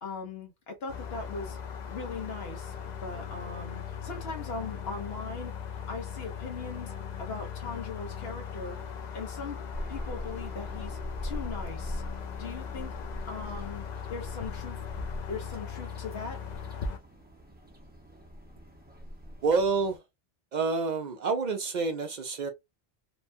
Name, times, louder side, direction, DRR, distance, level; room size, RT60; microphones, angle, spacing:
voice 1, 0.0-1.6 1.9-6.9 7.2-8.8 9.1-9.6 9.9-12.0 12.4-12.9 13.3-14.8 15.3-16.4, left 4 dB, 75° left, 1.1 m, -40 dB
sound 1, 0.9-17.0, left 7 dB, 55° left, 0.5 m, -39 dB
sound 2, 9.7-20.0, equal, 10° right, 0.6 m, -42 dB
voice 2, 19.4-20.0 20.5-22.5, right 4 dB, 55° right, 0.6 m, -28 dB
2.9 x 2.2 x 2.5 m
omnidirectional pair, 1.0 m